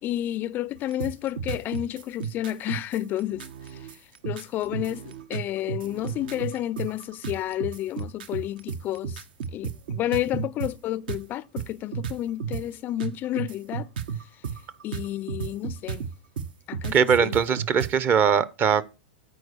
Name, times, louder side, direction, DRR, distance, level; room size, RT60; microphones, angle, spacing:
voice 1, 0.0-9.2 9.5-13.9 14.2-14.4 14.8-16.1 16.7-17.4, left 13 dB, 35° left, 0.3 m, -31 dB
sound 1, 0.7-10.7 11.1-11.2 11.6-12.6 13.0-17.9, right 7 dB, 70° right, 0.8 m, -33 dB
voice 2, 16.9-18.8, right 7 dB, 35° right, 0.7 m, -21 dB
9.4 x 4.4 x 6.6 m
hypercardioid pair, 100°, 5 cm